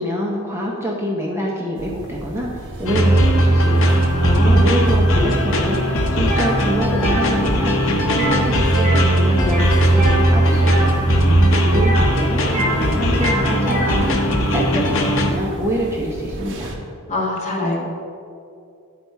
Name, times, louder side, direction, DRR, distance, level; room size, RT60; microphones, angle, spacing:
voice 1, 0.0-4.1 4.6-11.1 11.6-16.8, equal, 10° right, -2 dB, 0.6 m, -26 dB
sound 1, 1.7-16.8, right 1 dB, 60° right, 0.8 m, -35 dB
sound 2, 2.9-15.3, equal, 65° left, 0.8 m, -17 dB
voice 2, 4.1-4.7 17.1-17.8, left 1 dB, 35° left, -3 dB, 1.2 m, -24 dB
sound 3, 6.2-6.5 6.9-7.3 8.0-8.4 8.7-9.1 9.4-10.9 11.7-12.8 13.1-14.0, right 2 dB, 30° right, 1.1 m, -26 dB
9.4 x 4.2 x 4.5 m, 2.5 s
head